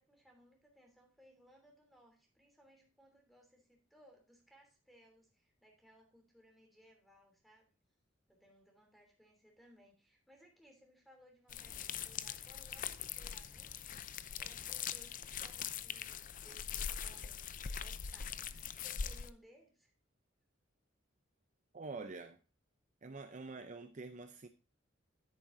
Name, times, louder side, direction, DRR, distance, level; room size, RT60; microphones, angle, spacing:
voice 1, 0.0-7.7 8.3-17.5 17.8-19.9, equal, ahead, 3.0 m, -64 dB
sound 1, 11.5-19.3, left 8 dB, 45° left, 0.5 m, -42 dB
voice 2, 21.7-22.4 23.0-24.5, right 3 dB, 40° right, 0.6 m, -46 dB
10.5 x 8.7 x 2.6 m
head